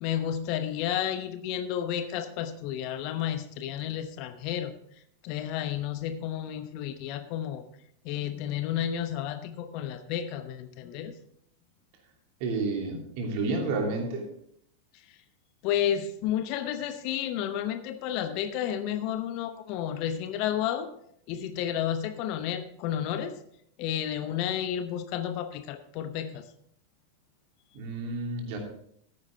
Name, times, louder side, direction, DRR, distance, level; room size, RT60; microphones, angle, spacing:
voice 1, 0.0-4.7 5.2-7.6 8.0-11.1 14.9-15.2 15.6-20.9 21.3-23.3 23.8-26.4, left 10 dB, 45° left, 9 dB, 0.9 m, -31 dB
voice 2, 12.4-14.2 27.7-28.6, right 3 dB, 45° right, 2 dB, 2.8 m, -30 dB
14.0 x 9.6 x 3.5 m, 0.69 s
figure-of-eight pair, 90°, 0 cm